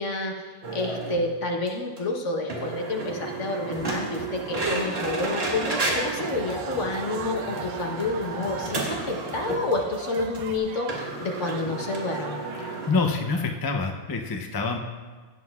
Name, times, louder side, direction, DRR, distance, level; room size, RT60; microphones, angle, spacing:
voice 1, 0.0-12.4, left 2 dB, 55° left, 1 dB, 1.4 m, -29 dB
sound 1, 0.6-1.2 1.7-1.8 2.0-2.1 2.5-9.7 10.0-10.1 10.3-10.4 10.9-12.9, right 2 dB, 45° right, 1.7 m, -32 dB
sound 2, 3.7-10.6, right 2 dB, 25° right, 0.6 m, -46 dB
sound 3, 4.9-13.6, right 8 dB, 85° right, 1.1 m, -40 dB
voice 2, 12.6-14.8, left 4 dB, 35° left, 3 dB, 0.3 m, -27 dB
17.0 x 7.6 x 2.4 m, 1.4 s
omnidirectional pair, 1.5 m